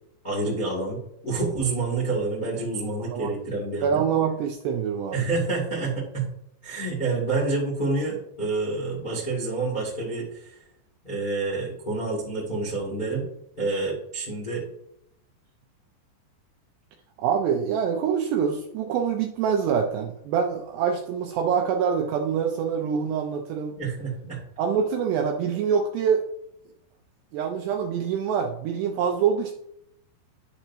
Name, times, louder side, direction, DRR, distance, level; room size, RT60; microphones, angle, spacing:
voice 1, 0.2-4.0 5.1-6.3 6.6-10.6 11.0-13.3 13.6-14.6 23.8-24.4, right 3 dB, 35° left, -5 dB, 0.7 m, -28 dB
voice 2, 3.0-3.3 3.8-5.2 17.2-23.7 24.6-26.2 27.3-29.5, right 7 dB, 80° right, 3 dB, 2.4 m, -25 dB
10.0 x 6.9 x 2.8 m, 0.76 s
omnidirectional pair, 5.5 m